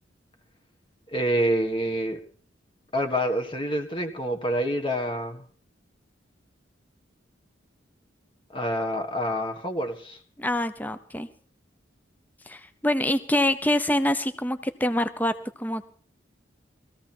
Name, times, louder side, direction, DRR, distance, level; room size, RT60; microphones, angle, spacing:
voice 1, 1.1-2.2 2.9-5.4 8.5-10.2, equal, 25° left, 4 dB, 1.6 m, -27 dB
voice 2, 10.4-11.3 12.5-15.9, left 1 dB, 10° left, 10 dB, 0.8 m, -26 dB
20.0 x 15.0 x 4.5 m, 0.44 s
head